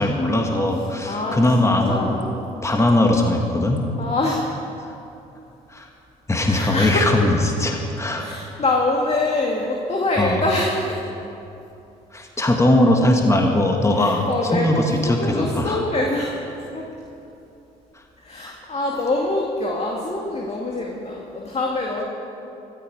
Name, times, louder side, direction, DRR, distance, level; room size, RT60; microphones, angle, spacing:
voice 1, 0.0-2.1 2.6-3.8 5.7-5.9 6.3-8.3 10.2-10.4 12.1-14.2 14.5-15.8 18.4-18.5, left 1 dB, 15° left, 2 dB, 1.8 m, -20 dB
voice 2, 1.0-2.4 4.0-4.5 6.5-7.1 8.2-11.0 13.9-16.4 16.7-16.9 18.2-22.0, left 2 dB, 35° left, -1 dB, 2.0 m, -25 dB
15.5 x 13.5 x 4.8 m, 2.8 s
hypercardioid pair, 55°, 18 cm